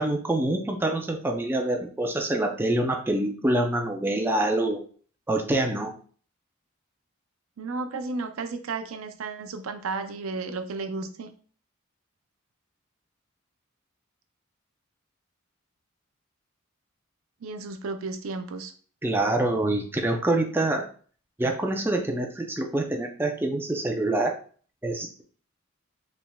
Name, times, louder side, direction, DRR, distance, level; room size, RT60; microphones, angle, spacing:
voice 1, 0.0-4.8 5.3-5.9 19.0-20.9 21.4-24.4 24.8-25.2, right 1 dB, 10° right, 2 dB, 0.5 m, -26 dB
voice 2, 7.6-11.3 17.4-18.7, right 3 dB, 80° right, 8 dB, 0.5 m, -33 dB
4.9 x 3.4 x 2.3 m, 0.43 s
head